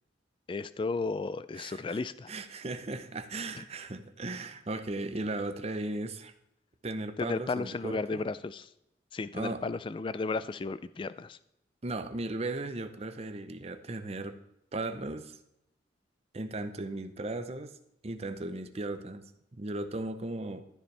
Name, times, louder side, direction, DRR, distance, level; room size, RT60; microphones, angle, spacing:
voice 1, 0.5-2.3 3.5-3.6 7.2-8.7 9.1-11.4, left 3 dB, 30° left, 15 dB, 0.3 m, -34 dB
voice 2, 1.6-2.0 2.3-6.3 6.8-8.2 9.3-9.6 11.8-14.4 14.7-15.4 16.3-17.7 18.0-20.6, right 2 dB, 35° right, 10 dB, 0.7 m, -36 dB
13.0 x 7.1 x 3.3 m, 0.83 s
head